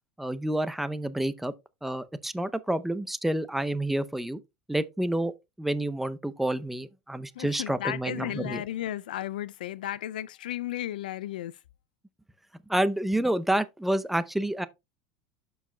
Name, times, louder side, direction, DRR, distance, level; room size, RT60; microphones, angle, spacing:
voice 1, 0.2-1.5 1.8-4.4 4.7-5.3 5.6-8.6 12.7-14.7, right 1 dB, 5° right, 0.6 m, -29 dB
voice 2, 7.3-11.6, left 13 dB, 85° left, 0.3 m, -34 dB
12.5 x 4.7 x 2.2 m
supercardioid pair, 105°, 5 cm